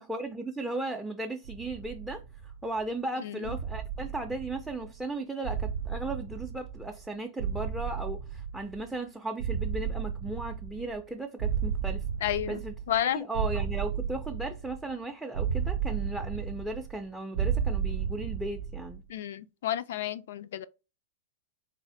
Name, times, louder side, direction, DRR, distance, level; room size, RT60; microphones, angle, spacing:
voice 1, 0.1-12.0 12.5-12.7 13.1-19.0, right 2 dB, 5° right, 0.4 m, -36 dB
sound 1, 1.4-2.8 3.4-5.0 5.4-7.1 7.4-9.0 9.4-11.1 11.4-13.0 13.3-14.9 15.3-17.0 17.3-19.0, right 7 dB, 70° right, 0.4 m, -33 dB
voice 2, 3.2-3.5 12.2-12.6 12.9-13.3 19.1-20.7, left 11 dB, 70° left, 0.3 m, -31 dB
3.2 x 2.0 x 3.8 m
hypercardioid pair, 115°, 0 cm